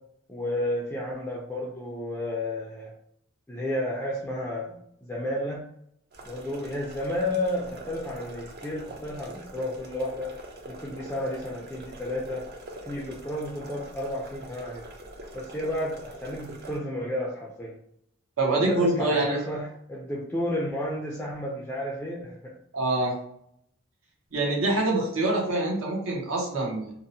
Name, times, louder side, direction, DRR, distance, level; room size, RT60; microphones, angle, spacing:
voice 1, 0.3-2.9 3.5-5.6 6.2-10.3 10.7-12.4 12.8-14.8 15.3-17.8 18.5-22.5, left 1 dB, 10° left, -4 dB, 0.3 m, -32 dB
sound 1, 6.1-16.8, right 1 dB, 50° right, 0.5 m, -44 dB
voice 2, 18.4-19.4 22.7-23.1 24.3-26.9, right 2 dB, 80° right, -2 dB, 0.7 m, -25 dB
2.7 x 2.0 x 2.6 m, 0.70 s
head